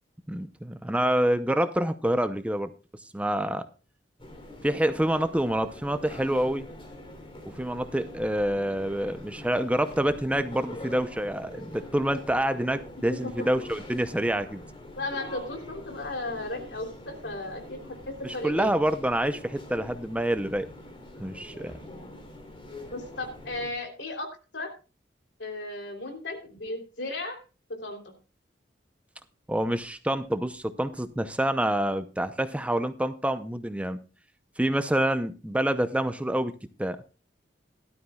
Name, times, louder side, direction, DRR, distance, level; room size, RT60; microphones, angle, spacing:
voice 1, 0.3-2.7 3.1-3.7 4.6-6.7 7.5-14.6 18.2-20.7 21.2-21.7 29.5-34.0 34.6-36.5 36.8-37.0, right 1 dB, 5° right, 10 dB, 0.6 m, -27 dB
sound 1, 4.2-23.7, left 1 dB, 30° left, 3.2 m, -44 dB
voice 2, 13.1-13.5 15.0-18.8 21.8-22.2 22.9-24.7 25.4-27.4 27.7-28.1, left 2 dB, 75° left, 3 dB, 3.3 m, -36 dB
17.0 x 12.5 x 2.3 m, 0.33 s
head